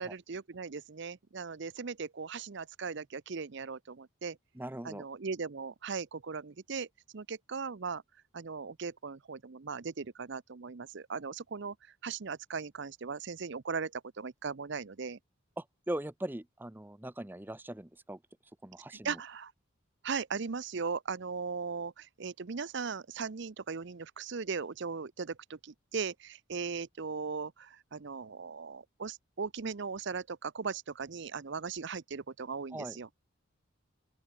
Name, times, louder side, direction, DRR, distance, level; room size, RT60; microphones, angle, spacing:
voice 1, 0.0-4.4 4.8-6.9 7.1-8.0 8.3-11.8 12.0-15.2 18.9-19.5 20.0-33.1, right 5 dB, 55° right, 0.6 m, -38 dB
voice 2, 4.6-5.1 15.6-18.2 18.6-19.2 32.7-33.0, right 1 dB, 10° right, 0.6 m, -40 dB
open air
head